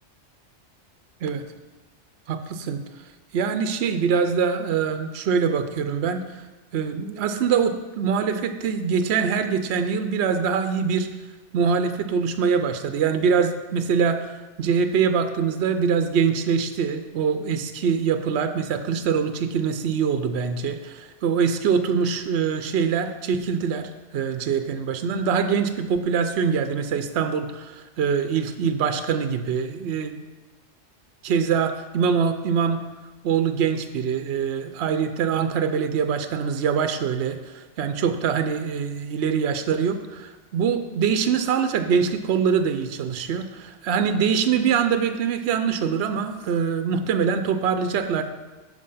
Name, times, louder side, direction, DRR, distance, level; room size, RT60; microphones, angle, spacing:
voice 1, 2.3-2.8 3.3-6.4 6.7-11.1 11.5-30.2 31.2-32.8 33.2-48.2, right 6 dB, 65° right, 8 dB, 0.8 m, -24 dB
7.6 x 7.5 x 5.5 m, 1.2 s
omnidirectional pair, 1.2 m